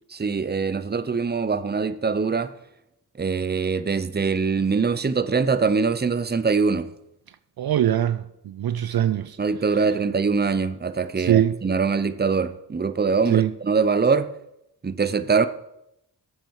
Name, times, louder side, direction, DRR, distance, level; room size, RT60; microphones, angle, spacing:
voice 1, 0.1-2.5 3.2-6.9 9.4-14.3 14.8-15.5, right 5 dB, 25° right, 0.7 m, -23 dB
voice 2, 7.6-9.4 11.2-11.6 13.3-13.5, right 11 dB, 60° right, 0.5 m, -22 dB
10.5 x 7.6 x 4.8 m
cardioid pair, 45°, 42 cm